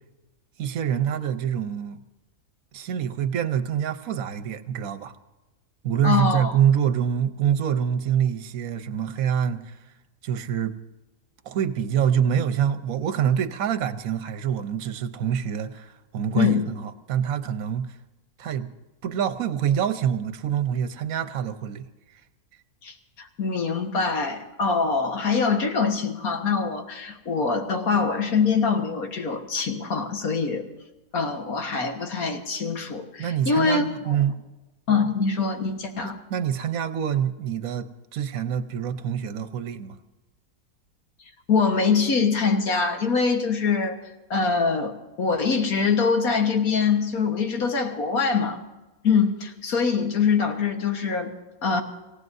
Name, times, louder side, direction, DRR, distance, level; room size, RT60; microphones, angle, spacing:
voice 1, 0.6-2.0 2.7-5.1 5.8-9.8 10.2-10.7 11.4-17.9 18.4-18.7 19.0-21.9 33.2-34.4 36.0-40.0, right 9 dB, 65° right, 10 dB, 1.3 m, -26 dB
voice 2, 6.0-6.5 16.4-16.6 22.8-30.7 31.1-33.9 34.9-36.2 41.5-44.0 44.3-48.6 49.0-51.3 51.6-51.8, left 5 dB, 70° left, 4 dB, 1.9 m, -24 dB
26.5 x 16.5 x 2.7 m, 1.1 s
omnidirectional pair, 1.6 m